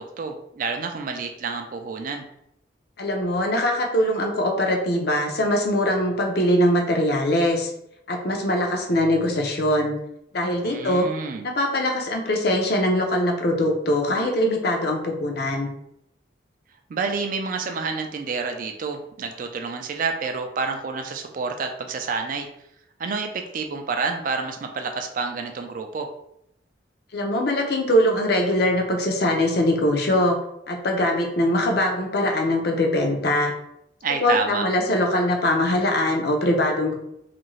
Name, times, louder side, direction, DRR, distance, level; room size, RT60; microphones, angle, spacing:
voice 1, 0.0-2.2 10.6-11.5 16.9-22.5 23.0-26.1 34.0-34.7, right 4 dB, 45° right, 5 dB, 0.3 m, -29 dB
voice 2, 3.0-7.7 8.1-10.0 10.3-11.1 11.6-15.7 27.1-30.4 30.7-33.5 34.2-36.9, left 1 dB, 55° left, 2 dB, 0.5 m, -22 dB
2.7 x 2.5 x 3.1 m, 0.77 s
head